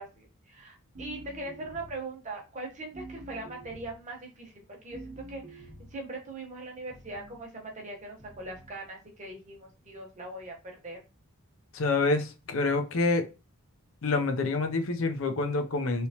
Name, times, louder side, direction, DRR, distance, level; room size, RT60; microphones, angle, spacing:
voice 1, 0.0-11.0, right 2 dB, 35° right, 1.0 m, -41 dB
sound 1, 0.9-2.1 2.9-4.0 4.9-6.0 6.9-7.5 8.2-8.8, right 2 dB, 50° right, 1.0 m, -47 dB
voice 2, 11.7-13.2 14.0-16.1, left 3 dB, 60° left, 0.6 m, -27 dB
3.3 x 2.9 x 2.8 m
head